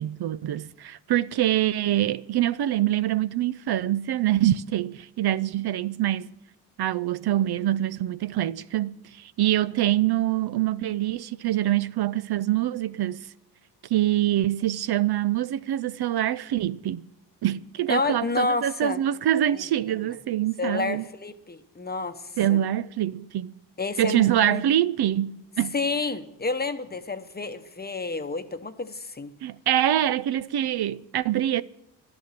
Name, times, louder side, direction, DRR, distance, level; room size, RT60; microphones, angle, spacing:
voice 1, 0.0-6.3 6.8-13.3 13.9-17.0 17.4-21.0 22.4-23.5 24.0-25.7 29.4-31.6, right 12 dB, 65° right, 0.5 m, -25 dB
voice 2, 17.9-19.0 19.5-19.6 19.9-20.0 20.6-22.2 22.5-22.6 23.8-24.6 25.7-29.3, left 3 dB, 20° left, 0.9 m, -29 dB
11.5 x 10.5 x 7.3 m
cardioid pair, 90°, 43 cm